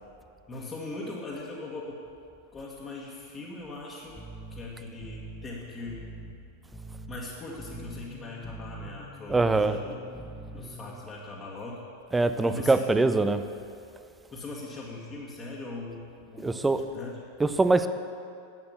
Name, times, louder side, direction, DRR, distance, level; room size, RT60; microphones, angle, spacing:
voice 1, 0.5-2.0 2.5-4.2 4.5-6.0 7.1-10.0 10.5-11.8 12.4-12.8 14.3-17.2, left 2 dB, 20° left, -6 dB, 1.7 m, -40 dB
sound 1, 4.2-11.0, right 2 dB, 5° left, 0.9 m, -44 dB
voice 2, 9.3-9.8 12.1-13.4 16.4-16.8 17.4-17.9, right 3 dB, 10° right, 11 dB, 0.6 m, -23 dB
11.0 x 8.7 x 7.2 m, 2.5 s
figure-of-eight pair, 90°, 0 cm